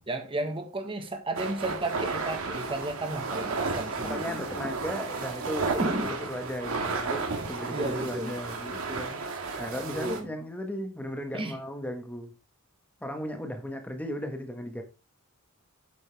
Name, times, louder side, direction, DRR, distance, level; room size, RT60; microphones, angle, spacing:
voice 1, 0.1-4.7 5.7-6.1 7.4-8.3 9.6-10.3 11.3-11.6, right 1 dB, 25° right, 1.6 m, -34 dB
sound 1, 1.4-10.2, right 4 dB, 75° right, 1.9 m, -33 dB
voice 2, 4.0-5.8 6.1-9.2 9.6-12.3 13.0-14.8, equal, 5° left, 1.6 m, -36 dB
8.7 x 6.9 x 3.5 m
head